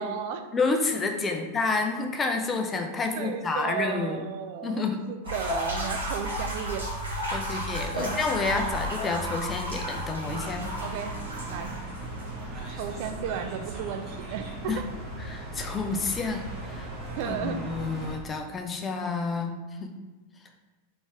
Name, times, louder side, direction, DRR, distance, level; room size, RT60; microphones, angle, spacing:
voice 1, 0.0-0.4 1.3-1.4 3.2-6.9 7.9-8.2 10.8-11.1 11.5-11.7 12.7-14.9 17.2-17.6, right 7 dB, 50° right, 7 dB, 0.4 m, -34 dB
voice 2, 0.5-4.2 4.6-5.0 7.3-10.6 14.7-14.8 15.3-16.9 17.2-19.5 19.8-19.9, left 3 dB, 20° left, 4 dB, 0.5 m, -29 dB
sound 1, 5.2-12.8, equal, 70° right, 1.4 m, -33 dB
sound 2, 10.2-18.2, right 2 dB, 25° right, 1.2 m, -38 dB
4.1 x 3.4 x 3.4 m, 1.2 s
figure-of-eight pair, 90°, 0 cm